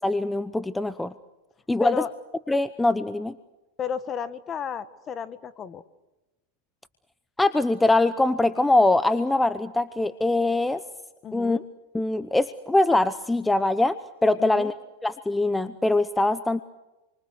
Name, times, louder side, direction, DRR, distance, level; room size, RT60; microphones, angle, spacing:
voice 1, 0.0-1.1 1.7-2.0 2.5-3.4 7.4-10.8 11.3-11.6 11.9-14.0 14.2-14.7 15.0-16.6, left 2 dB, 5° left, 13 dB, 0.9 m, -22 dB
voice 2, 1.8-2.1 3.8-5.8 11.2-11.6 14.4-14.7, left 8 dB, 30° left, 13 dB, 1.7 m, -33 dB
29.0 x 24.5 x 6.6 m, 1.0 s
hypercardioid pair, 120°, 0 cm